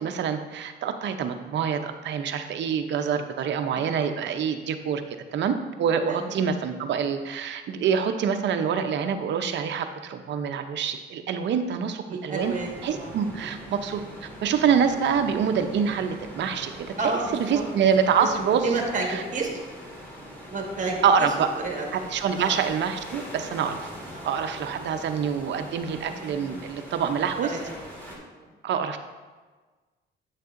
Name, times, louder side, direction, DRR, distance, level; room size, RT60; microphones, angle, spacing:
voice 1, 0.0-5.0 5.3-12.5 12.8-18.8 19.1-19.2 21.0-21.5 21.9-23.8 24.2-27.5 28.6-29.0, right 7 dB, 65° right, 7 dB, 0.6 m, -26 dB
voice 2, 6.1-6.4 12.1-13.1 17.0-17.7 18.3-19.5 20.5-21.3 21.6-22.1 22.3-22.6 24.1-24.3 26.1-26.7 27.5-27.7 28.3-28.5, right 3 dB, 40° right, 1 dB, 1.5 m, -31 dB
sound 1, 12.4-28.2, equal, 10° left, 1.9 m, -42 dB
8.1 x 6.6 x 2.5 m, 1.3 s
cardioid pair, 90°, 20 cm